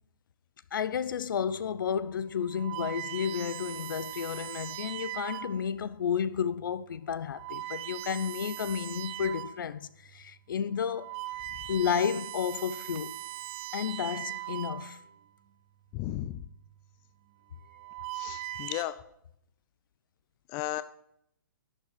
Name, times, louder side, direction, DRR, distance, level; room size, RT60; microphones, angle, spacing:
voice 1, 0.7-11.1 11.7-13.2 13.7-15.0, left 7 dB, 65° left, 0.7 m, -32 dB
sound 1, 1.5-1.7 2.4-5.8 6.4-6.7 7.2-9.7 10.1-10.2 10.8-15.2 16.2-16.6 17.5-18.8, right 16 dB, 35° right, 0.7 m, -40 dB
voice 2, 15.9-16.4 18.1-19.0 20.5-20.8, left 15 dB, 30° left, 0.5 m, -34 dB
11.5 x 8.4 x 5.2 m
hypercardioid pair, 135°, 12 cm